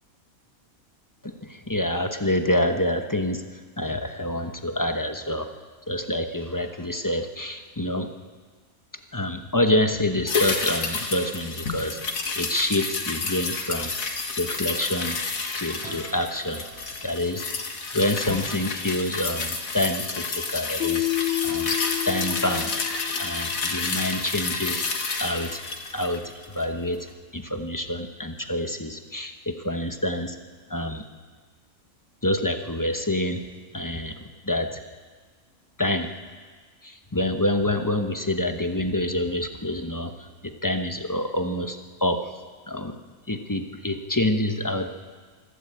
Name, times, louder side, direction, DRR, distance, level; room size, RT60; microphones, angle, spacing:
voice 1, 1.2-5.5 5.9-8.1 9.1-12.0 12.4-13.9 14.4-15.2 15.5-16.6 17.0-17.5 17.9-21.1 21.4-21.7 22.1-22.7 23.2-24.8 25.2-25.6 25.9-27.1 27.3-30.4 30.7-31.0 32.2-33.4 33.7-34.8 35.8-36.1 36.8-42.3 42.7-43.0 43.3-44.9, left 1 dB, 15° left, 6 dB, 1.0 m, -27 dB
sound 1, 10.3-26.8 27.1-27.2, left 4 dB, 80° left, 2.2 m, -30 dB
sound 2, 15.8-17.7, right 2 dB, 5° right, 7.4 m, -45 dB
Keyboard (musical), 20.8-23.6, left 19 dB, 45° left, 0.9 m, -29 dB
25.5 x 12.0 x 8.9 m, 1.5 s
omnidirectional pair, 1.4 m